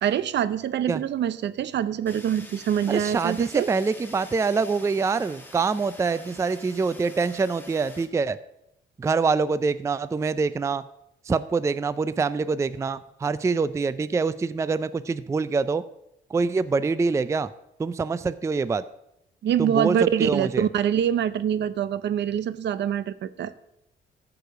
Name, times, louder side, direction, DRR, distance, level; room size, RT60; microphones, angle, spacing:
voice 1, 0.0-3.7 19.4-23.5, right 9 dB, 60° right, 15 dB, 0.6 m, -25 dB
Fire, 2.1-8.1, left 1 dB, 10° left, 1.7 m, -46 dB
voice 2, 2.9-8.4 9.0-10.8 11.3-15.8 16.3-17.5 17.8-18.8 19.6-20.7, right 4 dB, 15° right, 15 dB, 0.3 m, -25 dB
14.0 x 4.9 x 6.4 m, 0.82 s
cardioid pair, 90°, 20 cm